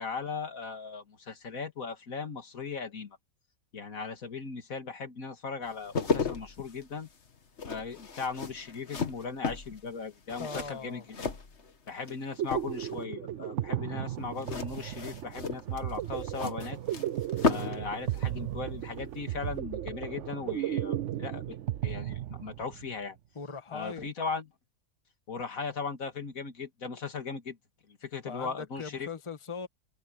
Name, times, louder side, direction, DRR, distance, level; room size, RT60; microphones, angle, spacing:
voice 1, 0.0-3.2 3.7-7.1 7.6-11.0 11.9-16.8 17.5-21.6 21.8-23.2 23.7-24.5 25.3-27.6 27.9-29.1, left 5 dB, 80° left, 2.5 m, -38 dB
sound 1, 5.7-12.1 12.4-13.0 14.4-17.9 18.1-18.3, left 4 dB, 55° left, 1.9 m, -34 dB
voice 2, 10.4-11.1 23.3-24.1 28.2-29.7, left 5 dB, 25° left, 1.3 m, -40 dB
sound 2, 12.1-22.9, right 12 dB, 65° right, 0.9 m, -35 dB
omnidirectional pair, 1.4 m